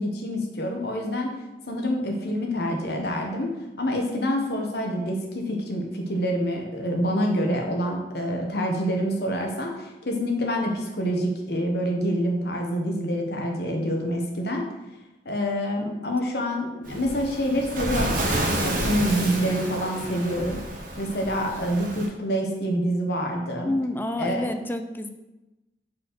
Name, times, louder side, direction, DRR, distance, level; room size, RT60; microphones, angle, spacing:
voice 1, 0.0-1.3 1.6-3.5 3.8-14.6 15.2-20.6 21.0-23.7 24.2-24.5, equal, 60° left, 1 dB, 1.2 m, -27 dB
Waves surf, 16.8-22.1, right 1 dB, 50° right, 1.3 m, -30 dB
voice 2, 23.6-25.1, left 1 dB, 10° left, 8 dB, 0.4 m, -29 dB
5.3 x 4.3 x 6.1 m, 1.0 s
head